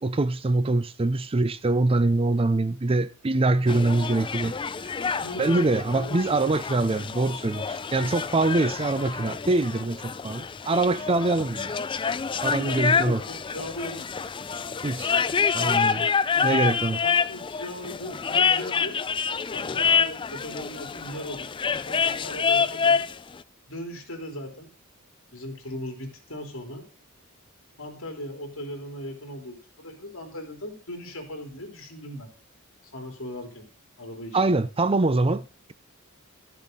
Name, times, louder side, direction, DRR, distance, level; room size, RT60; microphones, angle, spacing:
voice 1, 0.0-4.5 4.8-4.9 5.4-11.7 12.4-13.2 14.8-15.1 15.5-16.0 16.4-17.0 34.3-35.7, right 2 dB, 25° right, 0.5 m, -24 dB
sound 1, 3.7-23.2, left 6 dB, 25° left, 0.4 m, -27 dB
voice 2, 5.1-6.4 12.6-14.0 15.2-15.9 16.3-16.7 17.0-19.0 19.5-21.5 21.8-23.1 23.7-24.7 25.3-26.8 27.8-32.3 32.9-33.7 34.0-34.6, left 1 dB, 70° left, 3.4 m, -38 dB
13.0 x 7.3 x 3.9 m
head